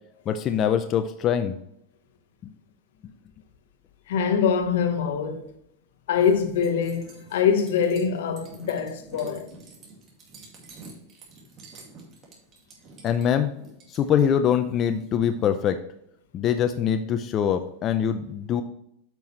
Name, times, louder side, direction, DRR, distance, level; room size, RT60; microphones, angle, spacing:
voice 1, 0.3-1.5 13.0-13.5 13.9-15.8 16.3-18.6, left 8 dB, 30° left, 0.5 m, -23 dB
voice 2, 4.1-5.5 6.1-9.6, left 7 dB, 75° left, 1.2 m, -24 dB
sound 1, 6.1-15.6, right 3 dB, 30° right, 2.3 m, -48 dB
9.0 x 5.6 x 3.2 m
supercardioid pair, 140°, 0 cm